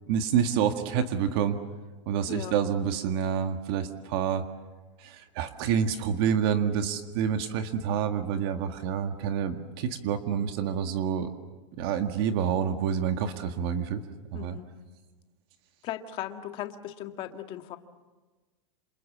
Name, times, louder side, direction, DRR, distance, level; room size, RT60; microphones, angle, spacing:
voice 1, 0.1-1.6 2.1-4.4 5.0-11.3 11.7-14.0 14.3-14.6, right 8 dB, 50° right, 7 dB, 1.8 m, -28 dB
voice 2, 14.3-14.7 15.8-17.8, left 11 dB, 30° left, 6 dB, 1.8 m, -37 dB
28.0 x 28.0 x 7.4 m, 1.3 s
supercardioid pair, 155°, 17 cm